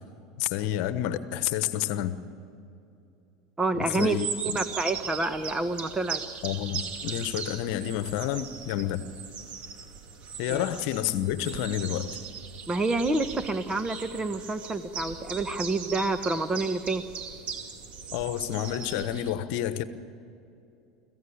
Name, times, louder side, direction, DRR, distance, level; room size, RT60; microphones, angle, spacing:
voice 1, 0.4-2.2 3.7-4.6 6.4-9.0 10.4-12.2 18.1-19.8, left 12 dB, 60° left, 1.1 m, -29 dB
voice 2, 3.6-4.2 4.4-6.2 10.5-10.6 12.7-17.0, right 2 dB, 20° right, 1.3 m, -28 dB
sound 1, 3.9-19.3, right 6 dB, 50° right, 2.4 m, -39 dB
25.5 x 15.5 x 8.6 m
hypercardioid pair, 85°, 3 cm